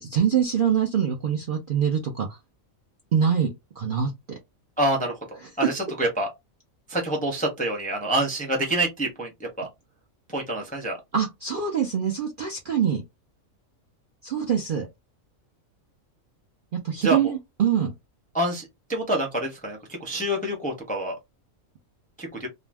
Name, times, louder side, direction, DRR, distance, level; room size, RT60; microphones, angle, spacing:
voice 1, 0.0-2.4 3.1-4.1 11.1-13.0 14.2-14.9 16.7-17.9, right 8 dB, 55° right, 0.6 m, -24 dB
voice 2, 4.8-6.3 6.9-9.7 10.3-11.0 17.0-17.3 18.3-21.2 22.2-22.5, right 1 dB, 10° left, 0.4 m, -27 dB
2.5 x 2.1 x 3.2 m
omnidirectional pair, 1.4 m